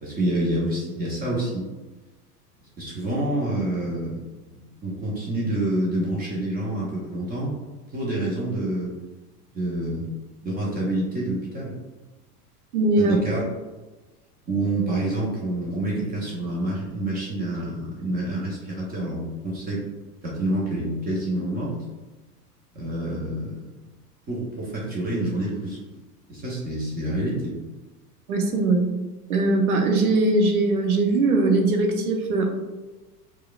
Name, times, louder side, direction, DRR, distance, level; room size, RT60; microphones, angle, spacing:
voice 1, 0.0-1.6 2.8-7.6 7.9-8.9 9.5-10.1 10.4-11.7 13.0-13.4 14.5-19.8 20.2-21.8 22.7-23.7 24.3-25.8 26.3-27.6, right 1 dB, 20° right, -5 dB, 0.7 m, -27 dB
voice 2, 12.7-13.2 28.3-28.8 29.3-32.5, right 2 dB, 65° right, 3 dB, 0.8 m, -20 dB
4.5 x 2.3 x 2.3 m, 1.2 s
figure-of-eight pair, 85°, 47 cm